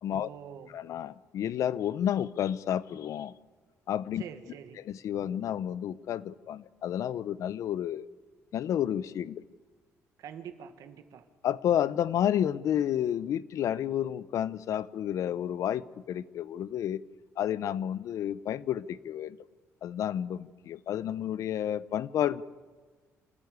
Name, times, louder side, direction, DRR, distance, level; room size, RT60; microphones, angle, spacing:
voice 1, 0.2-0.8 4.2-4.8 10.2-11.3, right 8 dB, 80° right, 8 dB, 1.8 m, -45 dB
voice 2, 0.7-3.3 3.9-4.2 4.8-8.1 8.5-9.4 11.4-17.0 17.4-19.4 19.8-22.4, left 10 dB, 70° left, 17 dB, 0.7 m, -30 dB
28.0 x 13.5 x 8.2 m, 1.4 s
cardioid pair, 110°, 6 cm